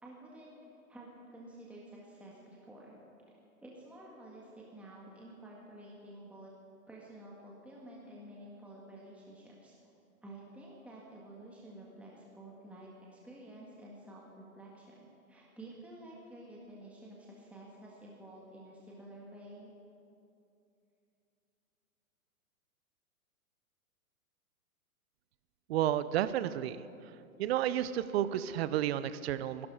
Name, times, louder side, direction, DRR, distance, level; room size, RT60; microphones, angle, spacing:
voice 1, 0.0-3.0 3.3-6.5 6.9-9.7 10.2-19.7, right 1 dB, 5° right, -4 dB, 1.8 m, -51 dB
voice 2, 25.7-27.1 27.4-29.7, right 11 dB, 45° right, 14 dB, 0.7 m, -32 dB
24.0 x 12.0 x 4.8 m, 2.7 s
hypercardioid pair, 125°, 44 cm